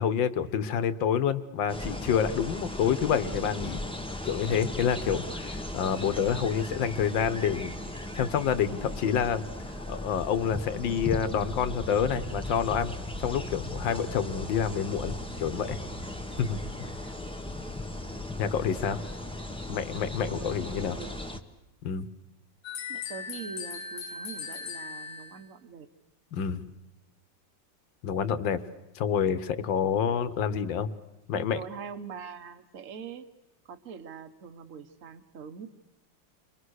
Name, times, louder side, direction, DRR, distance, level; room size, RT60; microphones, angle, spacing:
voice 1, 0.0-3.8 4.2-7.7 8.2-9.4 9.9-15.8 16.4-16.9 18.4-19.0 19.7-21.0 21.8-22.1 26.3-26.6 28.0-28.6 29.0-30.9 31.3-31.6, left 7 dB, 75° left, 12 dB, 1.8 m, -28 dB
sound 1, 1.7-21.4, left 1 dB, 5° left, 0.9 m, -37 dB
voice 2, 20.3-21.3 22.9-25.9 31.3-33.3 33.6-35.7, right 6 dB, 45° right, 9 dB, 1.5 m, -43 dB
sound 2, 22.6-25.5, left 5 dB, 60° left, 1.5 m, -38 dB
29.5 x 23.0 x 6.5 m, 1.1 s
omnidirectional pair, 2.1 m